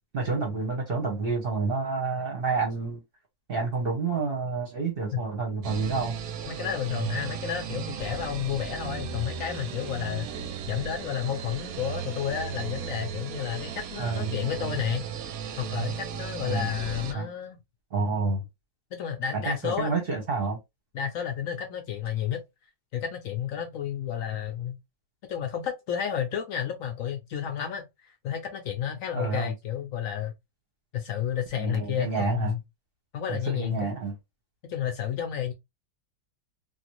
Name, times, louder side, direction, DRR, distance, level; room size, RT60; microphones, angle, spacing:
voice 1, 0.1-3.0 3.5-6.1 14.0-14.3 16.5-16.7 17.1-17.3 17.9-18.4 19.3-20.6 29.1-29.5 31.6-32.5 33.5-34.1, right 4 dB, 45° right, 0.9 m, -29 dB
sound 1, 5.6-17.1, right 8 dB, 70° right, 1.0 m, -35 dB
voice 2, 6.5-10.3 10.7-15.0 15.6-17.6 18.9-20.0 20.9-22.4 22.9-24.8 25.3-27.8 28.2-30.3 30.9-32.6 33.1-34.0 34.6-35.5, left 9 dB, 70° left, 0.9 m, -31 dB
3.1 x 2.4 x 3.0 m
omnidirectional pair, 1.7 m